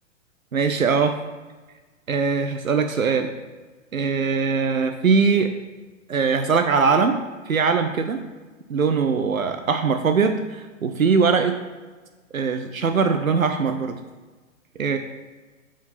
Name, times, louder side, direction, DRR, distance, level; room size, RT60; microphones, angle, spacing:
voice 1, 0.5-1.2 2.1-3.3 3.9-5.5 6.1-7.2 7.5-8.2 8.7-11.6 12.3-14.0 14.8-15.0, right 5 dB, 90° right, 7 dB, 0.7 m, -21 dB
7.1 x 5.0 x 4.0 m, 1.3 s
figure-of-eight pair, 120°, 40 cm